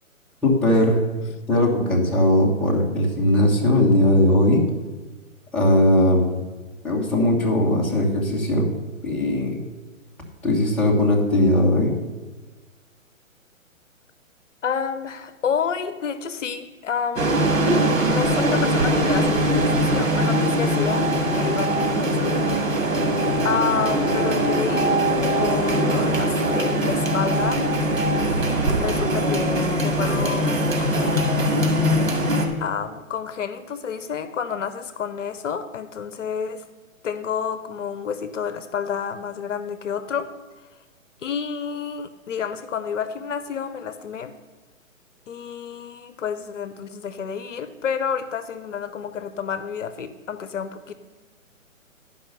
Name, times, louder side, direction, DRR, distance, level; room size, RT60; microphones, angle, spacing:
voice 1, 0.4-1.2 1.5-4.6 5.5-6.3 6.8-8.7 9.0-9.6 10.4-12.0, left 1 dB, 5° left, -6 dB, 1.2 m, -19 dB
voice 2, 14.6-17.5 18.1-21.1 21.3-22.5 23.4-25.0 25.4-27.6 28.8-31.3 32.6-36.6 37.0-40.3 41.2-44.3 45.3-50.9, left 7 dB, 65° left, 11 dB, 0.8 m, -29 dB
sound 1, 17.2-32.5, right 1 dB, 75° right, 2.2 m, -21 dB
10.5 x 5.5 x 6.6 m, 1.3 s
hypercardioid pair, 145°, 41 cm